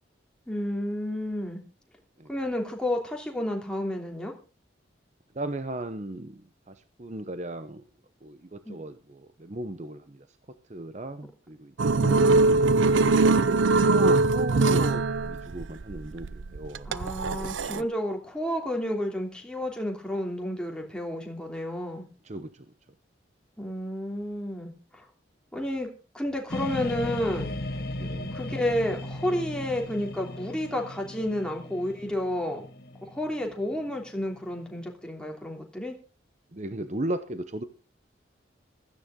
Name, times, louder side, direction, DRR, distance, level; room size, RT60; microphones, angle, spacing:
voice 1, 0.5-1.6 2.3-4.3 8.6-8.8 12.0-12.4 16.9-22.1 23.6-25.0 25.5-25.9 26.1-27.5 28.3-32.7 33.1-36.0, left 1 dB, 5° left, 1 dB, 3.0 m, -31 dB
voice 2, 5.3-7.8 8.2-11.9 12.9-16.9 17.4-17.9 22.2-22.7 28.0-28.3 36.5-37.6, right 1 dB, 40° right, 10 dB, 0.8 m, -36 dB
sound 1, 11.8-17.8, right 3 dB, 90° right, 0.6 m, -22 dB
sound 2, 26.5-34.9, left 1 dB, 55° left, 1.7 m, -37 dB
16.0 x 14.0 x 3.8 m, 0.33 s
head